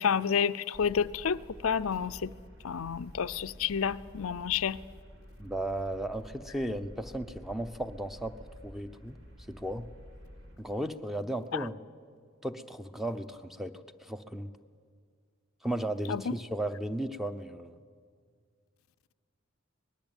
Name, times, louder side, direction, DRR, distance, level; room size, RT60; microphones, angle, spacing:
voice 1, 0.0-2.3 2.6-4.8 11.5-11.7 16.1-16.3, left 7 dB, 85° left, 0.5 m, -30 dB
sound 1, 0.7-10.6, equal, 65° right, 4.9 m, -50 dB
voice 2, 5.4-8.3 8.6-9.2 9.5-9.9 10.6-11.8 12.4-13.7 14.0-14.5 15.6-17.8, right 1 dB, ahead, 0.8 m, -35 dB
24.5 x 19.5 x 9.0 m
head